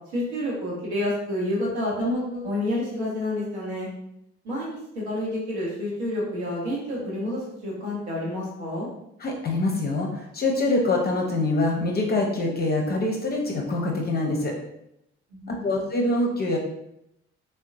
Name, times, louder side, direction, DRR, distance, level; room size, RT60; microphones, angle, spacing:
voice 1, 0.1-3.9 4.4-8.9 15.3-15.8, left 1 dB, 75° right, -5 dB, 0.9 m, -29 dB
voice 2, 9.2-14.5 15.5-16.6, left 2 dB, 30° left, 0 dB, 0.6 m, -25 dB
3.6 x 2.1 x 2.5 m, 0.80 s
figure-of-eight pair, 40°, 33 cm